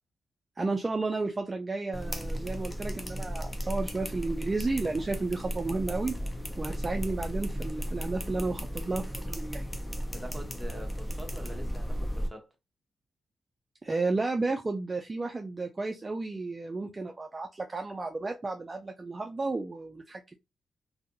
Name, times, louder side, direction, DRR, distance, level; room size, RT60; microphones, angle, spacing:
voice 1, 0.6-6.2 6.6-9.7 13.8-20.4, right 3 dB, 30° right, 0.3 m, -32 dB
sound 1, 1.9-12.3, equal, 15° left, 0.6 m, -35 dB
voice 2, 10.1-12.5, equal, 10° right, 1.0 m, -44 dB
2.6 x 2.5 x 2.5 m
cardioid pair, 60°, 0 cm